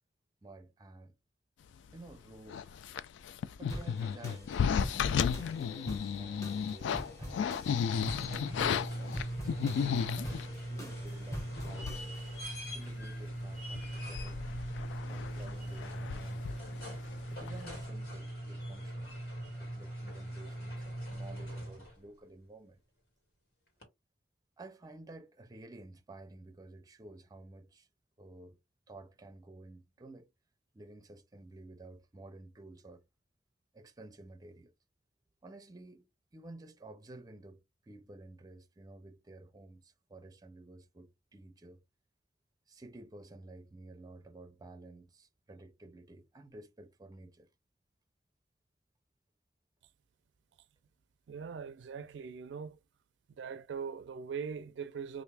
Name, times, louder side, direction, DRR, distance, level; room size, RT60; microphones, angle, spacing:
voice 1, 0.4-1.2 1.9-2.8 3.6-7.6 8.3-10.4 10.7-12.2 12.7-14.4 15.1-16.6 17.3-19.2 19.6-22.8 24.6-27.9 28.2-28.6 28.9-30.3 30.7-33.1 33.7-34.7 35.4-37.6 37.9-41.8 42.7-47.5, right 2 dB, 20° right, 0.5 m, -52 dB
sound 1, 2.5-10.5 11.2-11.3 11.6-12.2 12.4-12.5 13.0-13.3 13.7-17.2 17.5-17.7, left 7 dB, 90° left, 0.3 m, -34 dB
sound 2, 3.7-12.4, equal, 20° left, 1.2 m, -45 dB
sound 3, 7.8-22.1 23.8-23.9, right 1 dB, 60° left, 2.0 m, -40 dB
voice 2, 51.3-52.8 53.4-55.2, right 6 dB, 80° right, 0.4 m, -41 dB
3.3 x 2.5 x 3.3 m
head